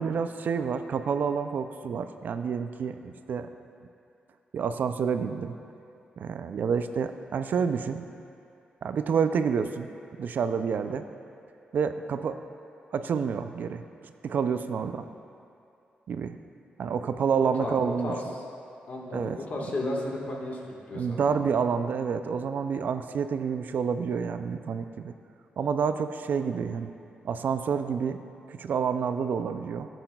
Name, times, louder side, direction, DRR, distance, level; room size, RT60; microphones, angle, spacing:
voice 1, 0.0-3.5 4.5-5.6 6.2-8.0 8.8-9.9 10.2-11.1 11.7-12.4 12.9-13.8 14.2-15.1 16.1-16.4 16.8-18.1 19.1-19.7 20.9-25.1 25.6-26.9 27.2-28.2 28.5-29.9, right 6 dB, 65° right, 9 dB, 0.4 m, -28 dB
voice 2, 17.4-18.4 18.9-21.5, left 1 dB, 50° left, -2 dB, 1.5 m, -34 dB
12.5 x 7.8 x 2.3 m, 2.6 s
cardioid pair, 85°, 3 cm